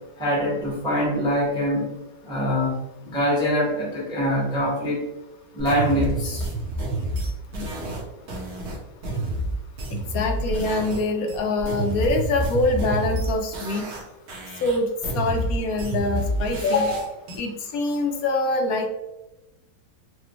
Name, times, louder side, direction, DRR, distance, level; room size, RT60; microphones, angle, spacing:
voice 1, 0.2-1.9 2.2-5.0 5.5-6.5, equal, 5° left, -6 dB, 1.0 m, -24 dB
sound 1, 5.6-11.0 11.3-14.0 14.3-17.4, right 1 dB, 70° right, 1.3 m, -29 dB
voice 2, 9.9-13.9 14.6-14.9 15.1-18.9, left 2 dB, 70° left, 4 dB, 1.0 m, -24 dB
4.9 x 2.2 x 3.0 m, 1.0 s
omnidirectional pair, 1.8 m